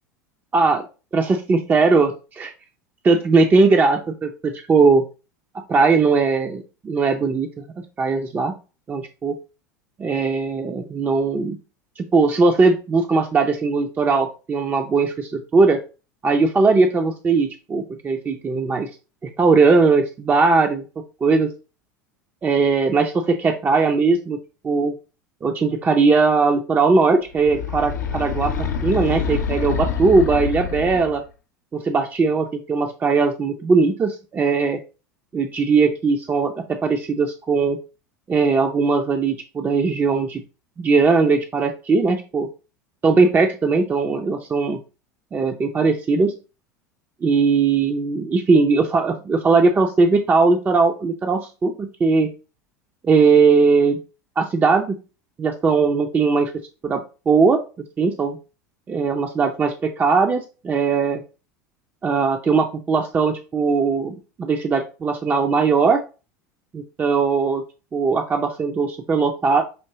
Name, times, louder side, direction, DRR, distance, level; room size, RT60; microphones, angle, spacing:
voice 1, 0.5-0.9 1.1-2.5 3.0-5.1 5.7-7.6 8.0-8.5 8.9-9.3 10.0-11.6 12.0-15.8 16.2-18.9 19.2-20.8 21.2-21.5 22.4-24.4 24.7-24.9 25.4-28.5 28.8-31.2 31.7-34.8 35.3-37.8 38.3-40.4 40.8-42.5 43.0-44.8 45.3-46.3 47.2-52.3 53.0-54.0 54.4-55.0 55.4-56.5 56.8-57.6 58.0-58.4 58.9-61.2 62.0-66.0 66.7-67.6 67.9-69.6, right 4 dB, 20° right, 4 dB, 0.5 m, -19 dB
sound 1, 27.3-31.3, left 6 dB, 75° left, 0.7 m, -26 dB
5.6 x 2.9 x 2.7 m, 0.32 s
figure-of-eight pair, 80°, 9 cm